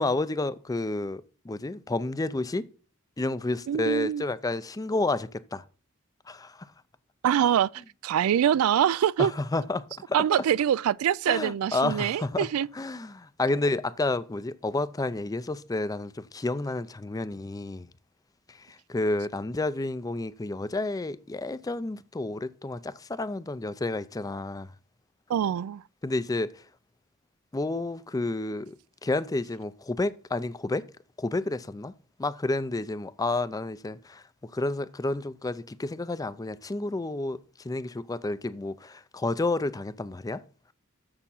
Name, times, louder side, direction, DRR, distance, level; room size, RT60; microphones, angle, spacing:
voice 1, 0.0-2.6 3.2-5.6 6.3-6.7 9.2-10.2 11.3-12.5 12.7-17.9 18.9-24.7 26.0-26.5 27.5-28.8 29.0-30.9 31.2-31.9 32.2-37.4 37.6-40.4, left 2 dB, 15° left, 0.4 m, -30 dB
voice 2, 3.7-4.2 7.2-7.7 8.0-9.3 10.1-12.7 25.3-25.8, right 9 dB, 75° right, 0.3 m, -24 dB
7.2 x 6.8 x 5.5 m
head